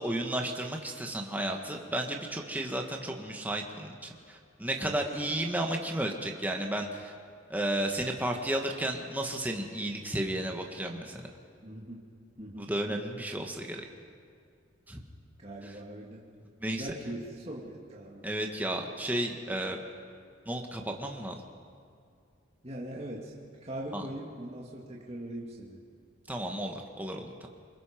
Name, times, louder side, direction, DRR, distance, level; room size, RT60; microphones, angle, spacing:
voice 1, 0.0-7.1 7.5-11.2 12.6-13.8 14.9-15.0 15.6-15.7 16.6-16.9 18.2-19.8 20.4-21.4 23.9-24.1 26.3-27.5, right 1 dB, 10° right, 2 dB, 1.7 m, -33 dB
voice 2, 11.6-12.1 12.4-12.7 15.4-16.2 16.6-18.3 22.6-23.3 23.6-25.8, right 1 dB, 30° right, -4 dB, 2.3 m, -41 dB
27.5 x 23.5 x 5.2 m, 2.3 s
head